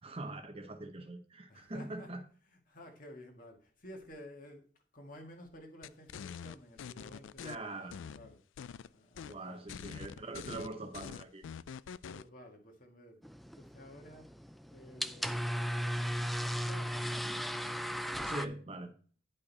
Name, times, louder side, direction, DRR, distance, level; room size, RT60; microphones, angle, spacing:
voice 1, 0.0-2.2 7.4-7.9 9.3-11.5 18.2-18.9, right 2 dB, 30° right, 0.9 m, -42 dB
voice 2, 1.5-2.1 2.5-4.7 4.9-8.4 8.9-9.6 11.9-13.2 13.5-14.3 14.7-15.7 16.0-16.1 16.6-17.2, left 1 dB, 45° left, 1.8 m, -53 dB
sound 1, 5.8-7.6 7.9-8.9 9.2-9.4 9.7-12.3, left 7 dB, 85° left, 0.3 m, -45 dB
sound 2, 13.2-18.5, equal, ahead, 0.3 m, -36 dB
10.0 x 5.4 x 4.1 m
head